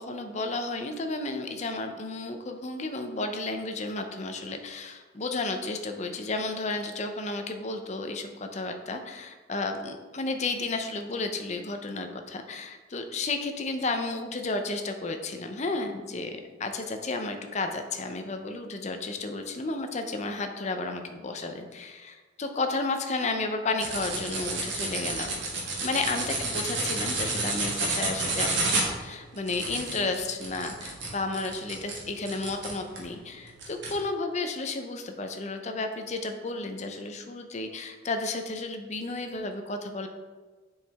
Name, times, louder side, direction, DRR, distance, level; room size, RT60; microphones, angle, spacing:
voice 1, 0.0-25.3 25.8-40.1, left 3 dB, 35° left, 5 dB, 0.6 m, -32 dB
sound 1, 23.8-33.1 33.6-33.9, right 3 dB, 70° right, 1.6 m, -30 dB
7.0 x 4.8 x 3.5 m, 1.3 s
head